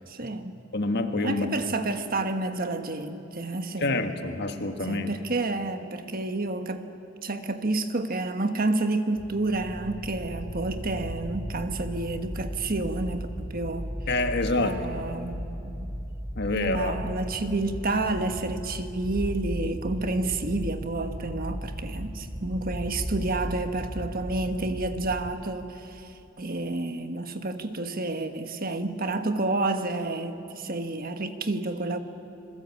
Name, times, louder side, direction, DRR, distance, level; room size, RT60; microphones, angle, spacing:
voice 1, 0.1-0.6 1.2-4.0 4.8-6.9 7.2-13.9 14.6-15.9 16.5-32.0, right 2 dB, 50° right, 8 dB, 1.4 m, -30 dB
voice 2, 0.7-1.5 3.8-5.1 14.1-15.0 16.3-17.0, left 2 dB, 60° left, 7 dB, 1.6 m, -27 dB
sound 1, 9.2-25.3, equal, 10° right, 2.5 m, -36 dB
27.0 x 21.0 x 8.5 m, 2.8 s
head